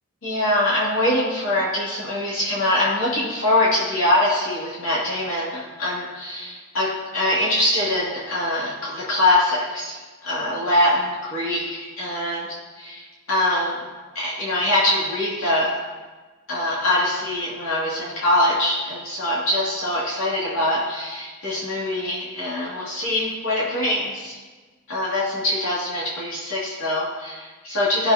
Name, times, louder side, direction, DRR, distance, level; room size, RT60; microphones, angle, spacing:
voice 1, 0.2-13.8 14.1-15.8 16.5-24.4 24.9-28.1, left 1 dB, 80° left, -6 dB, 2.4 m, -23 dB
16.0 x 6.8 x 2.9 m, 1.3 s
head